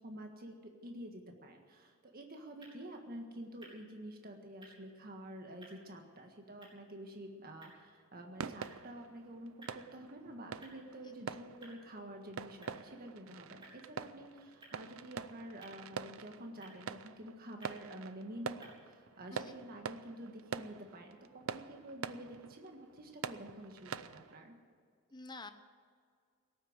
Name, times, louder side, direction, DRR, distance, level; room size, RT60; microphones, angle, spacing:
voice 1, 0.0-24.6, right 1 dB, 45° right, 3 dB, 1.7 m, -49 dB
sound 1, 2.5-18.7, right 1 dB, 25° right, 4.1 m, -63 dB
sound 2, 8.4-24.4, right 6 dB, 85° right, 0.6 m, -46 dB
voice 2, 11.0-11.3 19.3-19.6 25.1-25.5, left 3 dB, 20° left, 9 dB, 0.9 m, -49 dB
18.0 x 8.9 x 8.0 m, 2.1 s
head